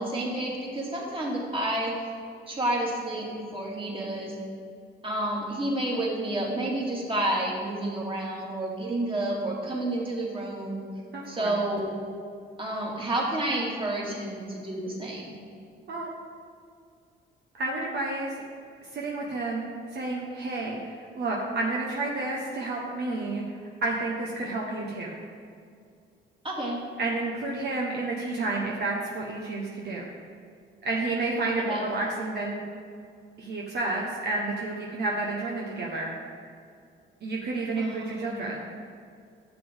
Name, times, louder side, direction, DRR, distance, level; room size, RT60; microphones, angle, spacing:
voice 1, 0.0-1.9 2.5-4.3 5.0-10.8 11.3-11.9 12.6-15.4 26.4-26.8 31.6-31.8 37.8-38.5, right 1 dB, 25° right, -3 dB, 2.4 m, -30 dB
voice 2, 11.1-11.5 15.9-16.1 17.6-18.3 18.9-19.7 19.9-23.4 23.8-25.2 27.0-30.0 30.8-32.6 33.4-36.1 37.2-38.6, right 2 dB, 55° right, -3 dB, 1.2 m, -30 dB
11.5 x 7.2 x 3.7 m, 2.3 s
cardioid pair, 90°, 20 cm